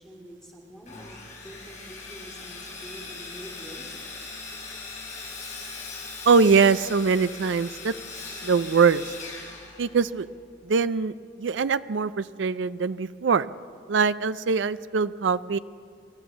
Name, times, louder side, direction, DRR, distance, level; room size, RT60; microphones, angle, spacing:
voice 1, 0.0-3.9, equal, 5° left, -2 dB, 2.4 m, -46 dB
Sawing, 0.8-10.3, left 4 dB, 40° left, 5.8 m, -40 dB
voice 2, 6.3-7.9 8.3-9.1 9.8-10.3 10.6-13.5 13.9-15.6, right 5 dB, 75° right, 14 dB, 0.5 m, -22 dB
28.0 x 13.0 x 7.2 m, 2.2 s
head